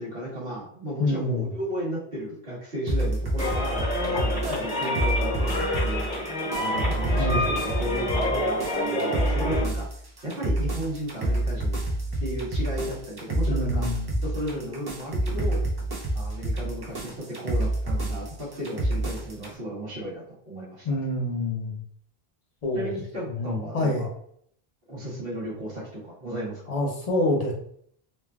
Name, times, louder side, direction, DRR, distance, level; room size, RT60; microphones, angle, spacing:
voice 1, 0.0-5.5 5.8-6.3 6.6-9.9 10.2-11.8 12.2-13.8 14.2-15.6 16.1-20.9 22.7-24.1 24.9-26.8, right 1 dB, 65° right, -7 dB, 1.5 m, -34 dB
voice 2, 1.0-1.5 7.2-7.5 13.5-14.2 20.8-21.8 22.6-22.9 23.3-24.1 26.7-27.5, left 2 dB, 45° left, -1 dB, 0.7 m, -27 dB
sound 1, 2.9-19.5, right 1 dB, 30° right, 0.5 m, -28 dB
sound 2, 3.4-9.6, left 1 dB, 10° right, 0.9 m, -28 dB
3.2 x 2.3 x 2.3 m, 0.66 s
omnidirectional pair, 1.1 m